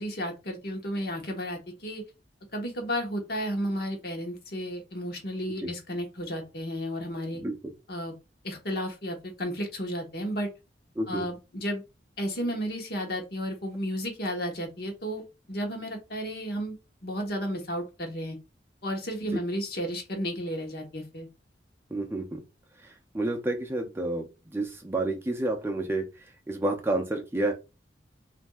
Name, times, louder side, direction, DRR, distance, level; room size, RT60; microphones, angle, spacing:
voice 1, 0.0-2.0 2.5-7.4 7.9-8.1 8.4-10.5 11.1-11.8 12.2-16.8 17.0-18.4 18.8-21.3, equal, 60° left, 2 dB, 1.2 m, -33 dB
voice 2, 7.4-7.7 11.0-11.3 19.3-19.4 21.9-22.4 22.8-26.1 26.5-27.5, right 2 dB, 15° right, 3 dB, 0.5 m, -30 dB
5.8 x 2.6 x 2.4 m, 0.28 s
head